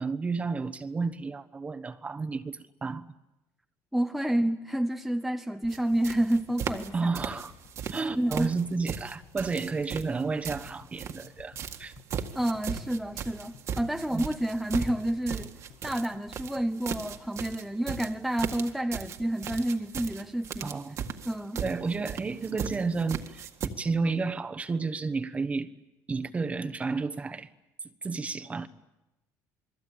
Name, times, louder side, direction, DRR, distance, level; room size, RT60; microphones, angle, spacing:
voice 1, 0.0-3.1 6.9-7.5 7.9-11.9 14.1-14.3 20.6-21.0 21.6-23.5 23.8-25.7 26.1-27.5 28.0-28.7, right 4 dB, 20° right, 1.2 m, -31 dB
voice 2, 3.9-7.1 8.2-8.5 12.3-20.7 21.2-21.6, right 1 dB, ahead, 0.9 m, -29 dB
sound 1, 5.6-17.8 18.1-18.2 18.4-18.5, left 9 dB, 75° left, 6.6 m, -55 dB
sound 2, 5.7-5.8 6.0-6.9 7.1-8.0 8.3-11.3 11.6-23.7, right 8 dB, 45° right, 1.9 m, -37 dB
28.5 x 21.5 x 9.0 m
cardioid pair, 140°, 7 cm